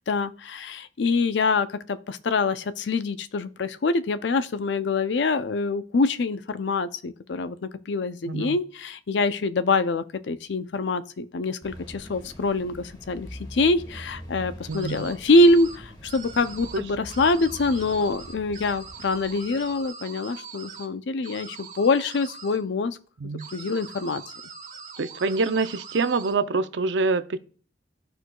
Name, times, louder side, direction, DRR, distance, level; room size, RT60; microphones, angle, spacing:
voice 1, 0.0-7.6 7.9-23.0 23.5-24.2, left 3 dB, 75° left, 0.5 m, -25 dB
voice 2, 8.3-8.6 14.7-15.1 16.7-16.8 23.2-23.5 25.0-27.4, right 3 dB, 80° right, 0.5 m, -25 dB
sound 1, 11.6-19.9, equal, 25° left, 1.2 m, -43 dB
sound 2, 14.7-15.8 16.0-16.8 17.1-20.9 21.2-22.6 23.4-26.3, right 6 dB, 40° right, 1.3 m, -42 dB
13.5 x 4.5 x 2.3 m
head